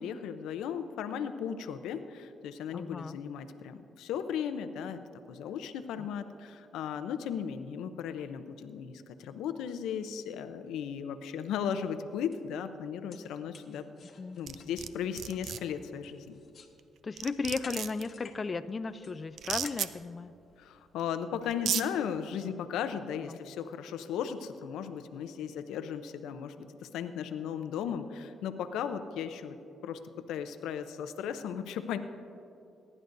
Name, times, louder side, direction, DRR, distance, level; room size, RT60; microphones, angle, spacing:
voice 1, 0.0-5.0 5.3-13.8 14.4-16.4 20.6-29.6 29.8-30.0 30.3-32.0, left 8 dB, 85° left, 10 dB, 0.6 m, -36 dB
voice 2, 2.7-3.2 6.0-6.1 14.2-14.4 17.0-20.3 23.3-23.4, left 4 dB, 35° left, 11 dB, 0.4 m, -35 dB
sound 1, 11.7-11.9 12.3-12.4 12.9-16.8 17.1-18.4 18.7-20.8, left 5 dB, 50° left, 1.3 m, -54 dB
sound 2, 14.5-14.9 15.2-15.6 16.8-16.9 17.2-18.0 19.4-19.9 21.0-21.1 21.5-21.8, right 9 dB, 65° right, 0.5 m, -33 dB
23.5 x 11.0 x 2.6 m, 2.7 s
cardioid pair, 90°, 0 cm